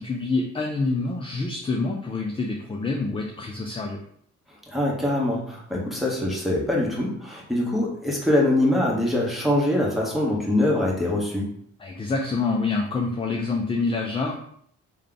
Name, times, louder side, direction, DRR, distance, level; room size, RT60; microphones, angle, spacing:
voice 1, 0.0-4.0 11.8-14.3, left 3 dB, 20° left, 1 dB, 0.4 m, -26 dB
voice 2, 4.7-11.5, left 1 dB, ahead, -4 dB, 1.2 m, -23 dB
3.2 x 2.3 x 3.8 m, 0.66 s
cardioid pair, 90°, 30 cm